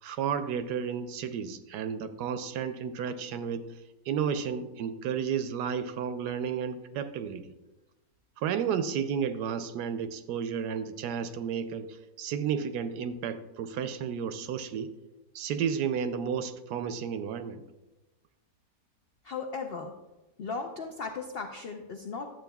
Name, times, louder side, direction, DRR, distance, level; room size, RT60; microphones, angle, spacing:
voice 1, 0.0-3.7 4.1-7.4 8.4-14.9 15.3-17.6, right 7 dB, 75° right, 10 dB, 1.1 m, -32 dB
voice 2, 19.2-20.0 20.4-22.3, left 4 dB, 80° left, 3 dB, 0.5 m, -36 dB
11.5 x 7.7 x 2.3 m, 1.1 s
omnidirectional pair, 1.8 m